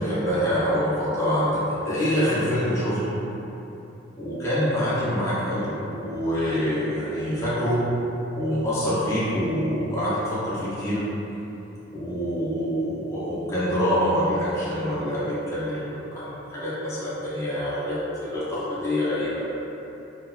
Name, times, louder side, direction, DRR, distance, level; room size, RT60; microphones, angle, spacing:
voice 1, 0.0-3.2 4.2-7.8 8.3-11.0 11.9-19.5, equal, 15° left, -11 dB, 0.6 m, -25 dB
2.7 x 2.2 x 3.6 m, 2.9 s
head